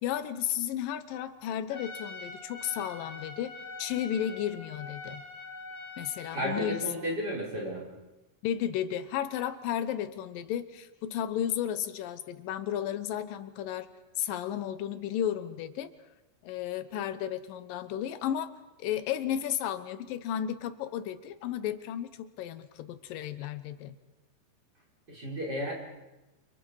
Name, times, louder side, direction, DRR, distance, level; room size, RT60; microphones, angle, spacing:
voice 1, 0.0-3.5 3.8-5.2 6.0-6.9 8.4-13.9 14.2-15.9 16.4-18.5 18.8-24.0, left 10 dB, 85° left, 11 dB, 2.7 m, -33 dB
Trumpet, 1.7-6.9, left 3 dB, 30° left, 3.8 m, -44 dB
voice 2, 6.3-7.8 25.1-25.7, equal, 30° right, -3 dB, 6.2 m, -33 dB
29.5 x 27.5 x 4.8 m, 1.0 s
omnidirectional pair, 3.9 m